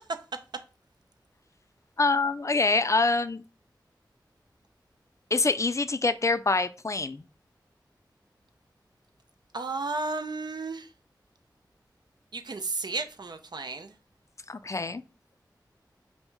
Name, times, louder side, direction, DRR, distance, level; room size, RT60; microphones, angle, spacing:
voice 1, 2.0-3.4 5.3-7.2 14.5-15.0, left 3 dB, 40° left, 0.4 m, -25 dB
voice 2, 9.5-10.9 12.3-13.9, right 3 dB, 65° right, 0.6 m, -33 dB
5.3 x 2.1 x 4.6 m
cardioid pair, 45°, 8 cm